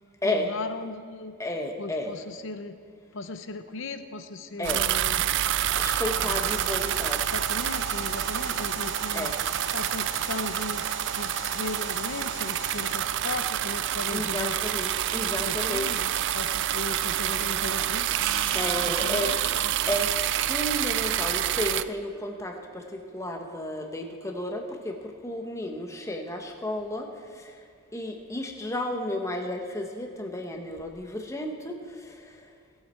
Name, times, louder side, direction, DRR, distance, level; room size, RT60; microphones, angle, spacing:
voice 1, 0.2-1.3 1.8-2.8 3.1-5.2 6.1-6.5 7.2-9.3 9.7-10.9 11.1-14.5 15.3-18.2 18.9-19.7, left 3 dB, 60° left, 10 dB, 0.7 m, -37 dB
voice 2, 1.4-2.1 4.6-4.8 5.7-7.2 9.1-9.3 14.1-15.9 18.5-22.5 22.9-24.9 25.2-27.1 27.9-31.7, left 1 dB, 15° left, 3 dB, 1.0 m, -32 dB
sound 1, 4.6-21.8, right 11 dB, 55° right, 0.3 m, -28 dB
Alarm, 6.2-13.2, right 1 dB, 30° right, 1.2 m, -40 dB
sound 2, 18.2-23.6, right 8 dB, 75° right, 0.8 m, -41 dB
18.5 x 8.1 x 4.4 m, 2.2 s
head